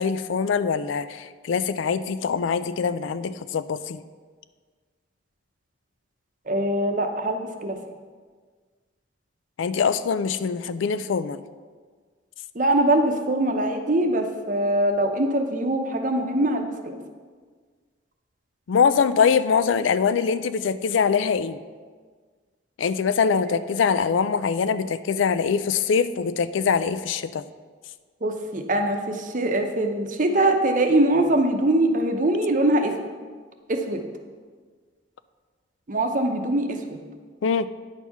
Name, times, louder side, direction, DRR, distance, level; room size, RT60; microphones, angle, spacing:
voice 1, 0.0-4.0 9.6-11.4 18.7-21.6 22.8-27.4 37.4-37.7, left 6 dB, 80° left, 13 dB, 0.4 m, -23 dB
voice 2, 6.5-7.8 12.5-17.0 23.5-23.6 28.2-32.9 33.7-34.0 35.9-37.0, right 1 dB, 45° right, 5 dB, 0.7 m, -23 dB
9.6 x 4.6 x 5.6 m, 1.5 s
head